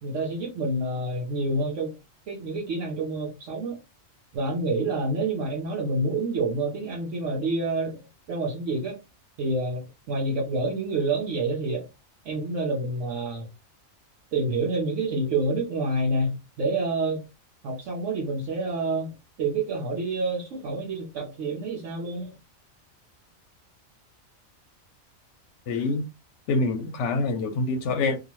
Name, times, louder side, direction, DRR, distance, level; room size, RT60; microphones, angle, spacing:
voice 1, 0.0-2.0 2.3-3.8 4.3-9.0 9.4-11.9 12.2-13.5 14.3-17.2 17.6-19.1 19.4-22.3, right 2 dB, 70° right, 1.0 m, -28 dB
voice 2, 25.7-26.0 26.5-28.2, left 3 dB, 65° left, 0.8 m, -25 dB
2.8 x 2.3 x 2.9 m
omnidirectional pair, 1.4 m